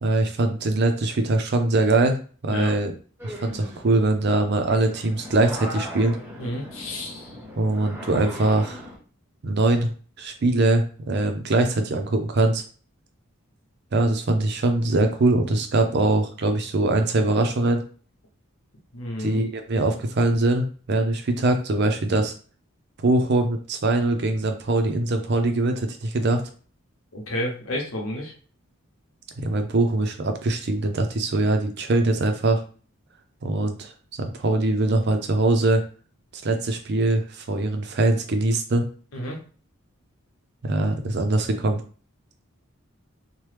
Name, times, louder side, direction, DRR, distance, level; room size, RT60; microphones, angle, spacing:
voice 1, 0.0-2.9 3.2-6.2 7.6-8.9 9.4-9.9 10.2-12.6 13.9-17.8 19.2-22.3 23.0-26.4 29.4-32.6 33.4-33.9 34.2-35.8 36.3-38.9 40.6-41.8, right 2 dB, 55° right, 7 dB, 0.5 m, -22 dB
voice 2, 2.4-2.8 6.4-7.4 18.9-19.4 27.1-28.3 39.1-39.4, left 1 dB, 85° left, 0 dB, 0.9 m, -31 dB
sound 1, 3.2-9.0, equal, 10° right, 0.8 m, -39 dB
3.0 x 2.1 x 3.3 m, 0.40 s
head